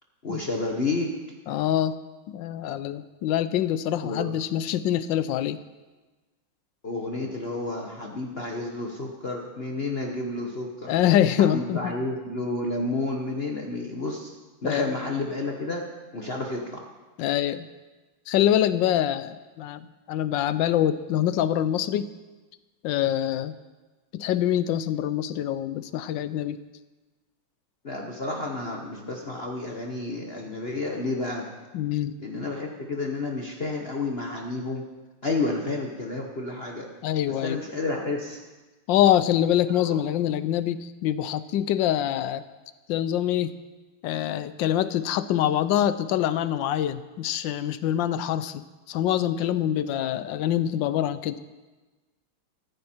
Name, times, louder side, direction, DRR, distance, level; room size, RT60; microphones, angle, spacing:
voice 1, 0.2-1.1 4.0-4.3 6.8-10.9 11.4-14.3 14.6-15.8 16.1-16.8 27.8-31.5 32.2-34.8 35.2-36.9 37.3-38.4 39.8-40.0, left 2 dB, 35° left, 1 dB, 1.1 m, -30 dB
voice 2, 1.5-2.0 2.3-5.6 10.9-11.9 14.6-14.9 17.2-17.7 18.3-22.1 22.8-23.5 24.1-26.6 31.7-32.1 37.0-37.6 38.9-42.4 42.9-43.6 44.0-51.4, left 11 dB, 75° left, 14 dB, 1.2 m, -25 dB
14.5 x 14.0 x 4.4 m, 1.2 s
omnidirectional pair, 2.2 m